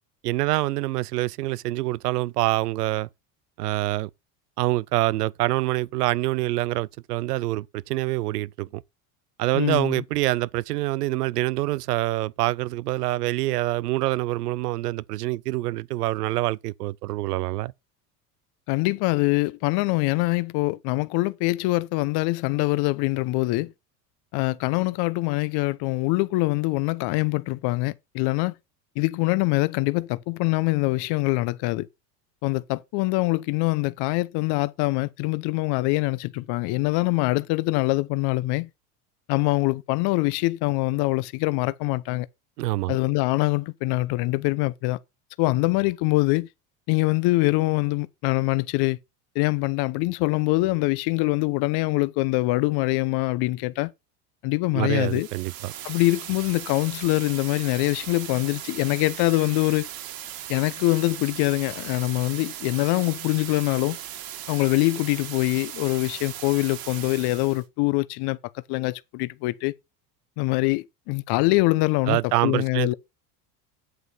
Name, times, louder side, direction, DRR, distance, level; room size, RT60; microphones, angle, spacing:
voice 1, 0.2-3.1 3.6-4.1 4.6-8.8 9.4-17.7 42.6-43.0 54.7-55.7 72.1-72.9, right 18 dB, 90° right, 0.6 m, -26 dB
voice 2, 9.5-10.0 18.7-23.7 24.3-28.5 29.0-31.9 32.4-38.7 39.3-42.3 42.9-45.0 45.4-46.5 46.9-49.0 49.3-53.9 54.4-55.3 55.8-59.9 60.5-64.0 64.5-68.4 68.7-69.7 70.4-72.9, left 21 dB, 55° left, 0.9 m, -24 dB
sound 1, 55.0-67.6, right 11 dB, 50° right, 2.5 m, -38 dB
8.2 x 8.0 x 5.5 m
hypercardioid pair, 95°, 46 cm